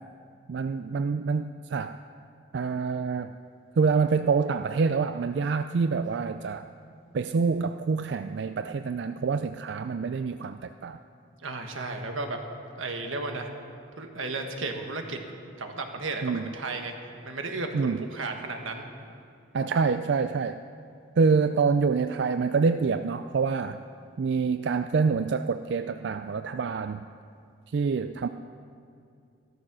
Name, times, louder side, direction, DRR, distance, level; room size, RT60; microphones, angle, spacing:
voice 1, 0.5-2.0 2.5-3.3 3.8-6.7 7.1-11.0 16.2-16.5 17.7-18.0 19.5-20.6 21.2-23.8 24.2-27.0 27.7-28.3, right 5 dB, 60° right, 10 dB, 0.4 m, -26 dB
voice 2, 11.4-12.4 12.7-13.5 14.0-15.2 15.6-16.9 17.2-18.8, right 3 dB, 90° right, 4 dB, 1.5 m, -34 dB
15.0 x 13.0 x 6.2 m, 2.4 s
head